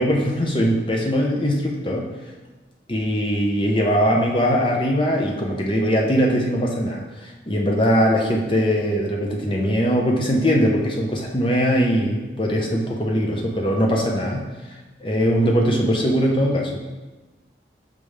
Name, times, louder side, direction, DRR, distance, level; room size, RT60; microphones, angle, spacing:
voice 1, 0.0-2.1 2.9-14.5 15.0-16.8, equal, 30° left, 0 dB, 0.8 m, -21 dB
5.4 x 5.3 x 3.3 m, 1.2 s
head